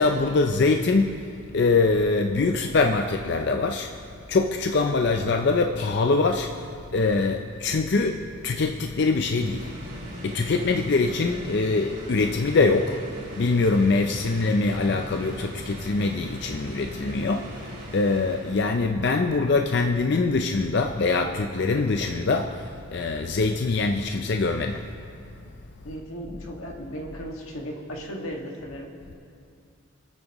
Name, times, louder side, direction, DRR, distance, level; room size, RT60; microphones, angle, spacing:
voice 1, 0.0-4.0 4.3-9.7 10.1-13.0 13.3-24.9, left 3 dB, 55° left, 4 dB, 0.4 m, -23 dB
sound 1, 9.0-19.0, equal, 55° right, 2.7 m, -40 dB
voice 2, 25.8-28.9, equal, 90° left, 0 dB, 1.8 m, -36 dB
25.5 x 9.0 x 3.0 m, 2.4 s
head